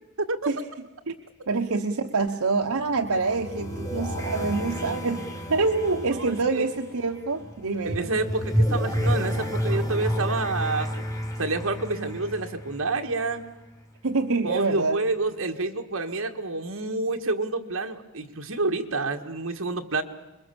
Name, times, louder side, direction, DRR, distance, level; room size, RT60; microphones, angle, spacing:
voice 1, 1.5-8.1 14.0-15.0, right 3 dB, 85° right, 5 dB, 1.0 m, -26 dB
sound 1, 2.6-13.4, equal, 15° left, 2.8 m, -30 dB
voice 2, 6.1-6.7 7.8-10.9 11.4-13.4 14.4-20.0, right 3 dB, 65° right, 4 dB, 1.8 m, -28 dB
26.5 x 22.0 x 7.0 m, 1.0 s
head